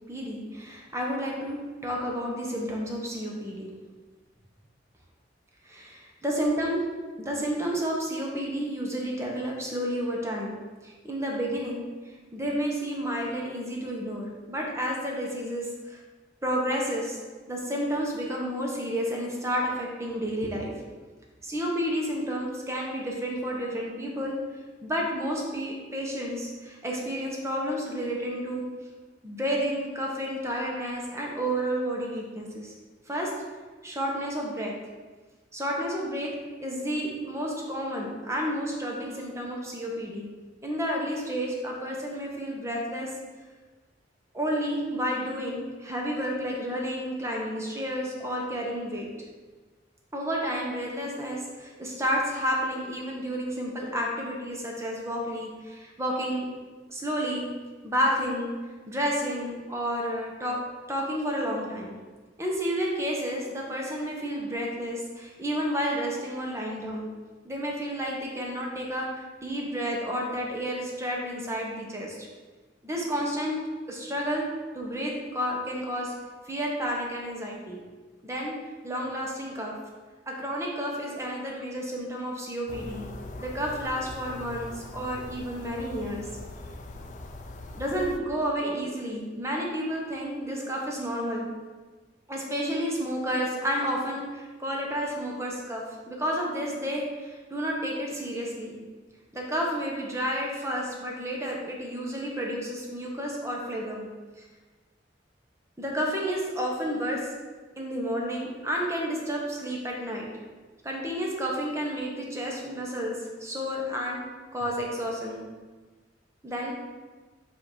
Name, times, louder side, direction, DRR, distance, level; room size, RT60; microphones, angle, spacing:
voice 1, 0.1-3.7 5.7-6.8 7.2-10.6 10.8-16.0 16.4-17.2 17.5-20.7 21.4-24.4 24.8-28.7 29.2-32.7 33.1-33.3 33.8-34.7 35.5-40.3 40.6-43.1 44.3-49.1 50.1-56.5 56.9-57.5 57.8-58.5 58.9-60.6 60.9-62.0 62.4-67.1 67.4-72.3 72.8-73.6 73.9-74.5 74.7-76.1 76.5-77.8 78.2-78.5 78.8-79.8 80.3-83.0 83.4-86.3 87.7-91.5 92.3-98.8 99.3-104.1 104.4-104.5 105.8-107.3 107.8-110.3 110.8-114.2 114.5-115.4 116.4-116.7, equal, 15° right, -1 dB, 0.9 m, -31 dB
sound 1, 82.7-88.2, left 2 dB, 40° left, 0.4 m, -41 dB
7.6 x 2.7 x 4.5 m, 1.3 s
head